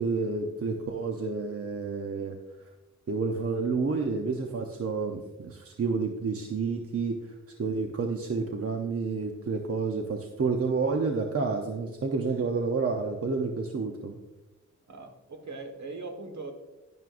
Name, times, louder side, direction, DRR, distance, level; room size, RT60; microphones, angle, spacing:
voice 1, 0.0-2.4 3.1-7.2 7.6-14.2, right 4 dB, 50° right, 2 dB, 0.8 m, -29 dB
voice 2, 14.9-16.5, right 3 dB, 70° right, 4 dB, 1.5 m, -40 dB
11.0 x 11.0 x 2.6 m, 1.0 s
wide cardioid pair, 175°, 29 cm